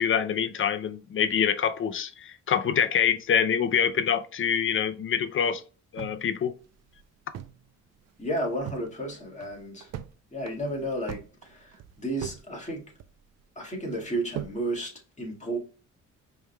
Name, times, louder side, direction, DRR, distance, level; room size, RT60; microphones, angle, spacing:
voice 1, 0.0-5.6 5.9-6.5, left 8 dB, 45° left, 0.5 m, -25 dB
sound 1, 6.0-7.7 8.0-8.1 8.4-8.9 9.3-10.1 10.4-12.5 12.7-13.4 13.9-14.6, right 11 dB, 60° right, 0.5 m, -40 dB
voice 2, 8.2-9.9 10.3-12.8 13.6-14.9 15.2-15.6, right 1 dB, 25° left, 1.8 m, -32 dB
5.2 x 3.4 x 2.2 m
cardioid pair, 90°, 30 cm